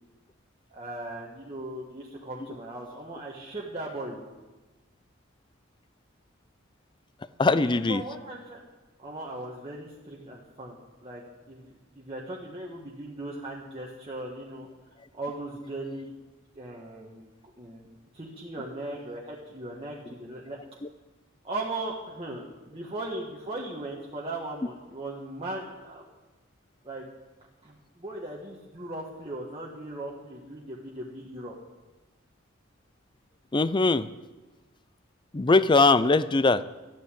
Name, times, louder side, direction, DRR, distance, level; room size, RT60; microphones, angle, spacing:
voice 1, 0.7-4.3 7.6-8.6 9.0-14.7 15.1-16.1 16.5-17.3 17.6-17.9 18.1-20.6 21.4-26.0 26.8-27.1 27.6-31.5, right 2 dB, 30° right, -4 dB, 1.6 m, -38 dB
voice 2, 7.4-8.0 20.8-20.9 33.5-34.1 35.3-36.6, left 3 dB, 25° left, 15 dB, 0.5 m, -21 dB
13.5 x 9.3 x 8.4 m, 1.2 s
head